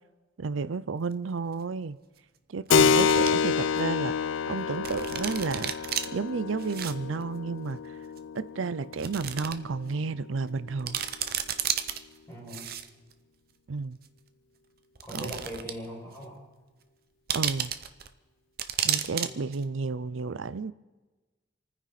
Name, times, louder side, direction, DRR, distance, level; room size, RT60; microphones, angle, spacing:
voice 1, 0.4-2.0 2.5-4.1 4.5-5.7 6.1-7.9 8.3-11.0 13.7-14.0 15.1-15.4 17.3-17.7 18.8-20.7, right 4 dB, 85° right, 0.5 m, -32 dB
sound 1, 1.1-1.2 2.7-3.3 3.8-3.9 4.8-6.1 6.6-6.9 7.2-7.3 8.2-8.3 8.9-9.5 9.9-10.0 10.5-10.6 10.8-12.0 12.5-13.1 14.0-14.1 15.0-15.9 16.2-16.3 17.3-18.1 18.6-19.3 19.5-19.6, right 9 dB, 50° right, 0.8 m, -32 dB
Keyboard (musical), 2.7-10.9, left 6 dB, 80° left, 0.4 m, -28 dB
voice 2, 12.3-12.7 15.0-16.4 19.2-19.5, equal, 15° left, 6.6 m, -41 dB
29.0 x 9.8 x 4.2 m
head